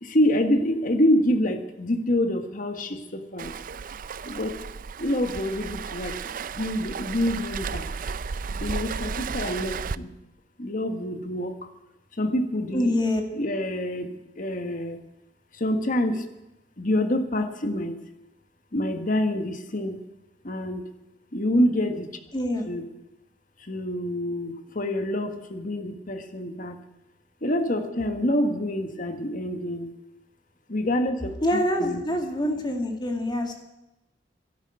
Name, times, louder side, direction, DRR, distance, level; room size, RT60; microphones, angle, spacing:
voice 1, 0.0-3.5 4.2-4.6 5.0-6.2 6.6-7.9 8.6-10.1 10.6-11.5 12.2-12.9 13.3-15.0 15.5-16.2 16.8-17.9 18.7-20.0 20.4-20.8 21.3-22.1 22.7-22.8 23.6-26.8 27.4-29.9 30.7-31.3 31.7-32.0, left 1 dB, 45° left, 7 dB, 1.6 m, -26 dB
Waves surf, 3.4-9.9, right 5 dB, 50° right, 0.4 m, -34 dB
voice 2, 12.7-13.2 22.3-22.7 31.4-33.5, left 1 dB, 25° left, 3 dB, 2.2 m, -25 dB
12.0 x 11.0 x 9.0 m, 0.95 s
head